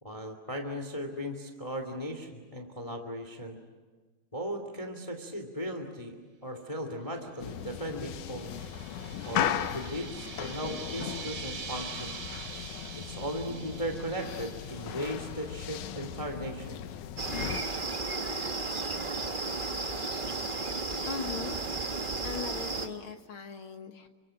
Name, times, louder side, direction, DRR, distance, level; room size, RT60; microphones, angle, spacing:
voice 1, 0.0-3.6 4.3-6.2 6.4-8.7 9.3-12.2 13.0-16.8, equal, 10° left, 6 dB, 2.2 m, -37 dB
sound 1, 7.4-17.6, left 10 dB, 85° left, 2.5 m, -37 dB
sound 2, 7.6-15.9, right 5 dB, 60° right, 3.7 m, -45 dB
sound 3, 17.2-22.9, right 3 dB, 35° right, 0.8 m, -33 dB
voice 2, 20.3-20.8 21.1-21.6 22.2-24.1, left 5 dB, 50° left, 6 dB, 2.0 m, -40 dB
30.0 x 25.0 x 7.7 m, 1.4 s
omnidirectional pair, 3.4 m